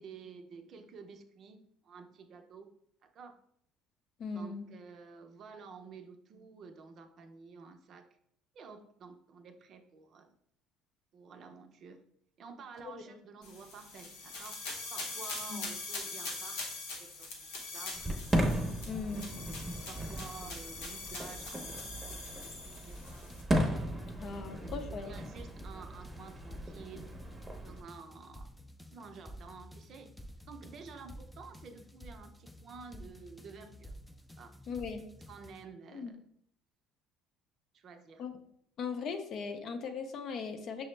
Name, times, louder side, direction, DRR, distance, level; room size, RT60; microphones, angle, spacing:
voice 1, 0.0-2.7 3.0-3.3 4.3-8.1 8.5-10.4 11.1-12.1 12.4-17.1 17.4-18.1 19.1-23.3 24.1-24.8 25.1-27.1 27.6-28.5 28.9-30.2 30.5-33.9 34.4-34.5 35.3-36.3 37.7-38.2, right 5 dB, 50° right, 6 dB, 0.5 m, -51 dB
voice 2, 4.2-4.7 12.9-13.2 15.5-15.6 18.9-19.3 24.2-25.1 34.7-35.0 35.9-36.1 38.2-38.3 38.8-40.9, left 5 dB, 55° left, 7 dB, 0.6 m, -39 dB
sound 1, 13.4-23.4, left 3 dB, 85° left, 0.8 m, -42 dB
Fireworks, 17.9-27.8, equal, 15° right, 0.7 m, -36 dB
sound 2, 22.9-35.7, equal, 5° left, 0.3 m, -51 dB
5.8 x 2.0 x 3.2 m, 0.69 s
supercardioid pair, 95°, 0 cm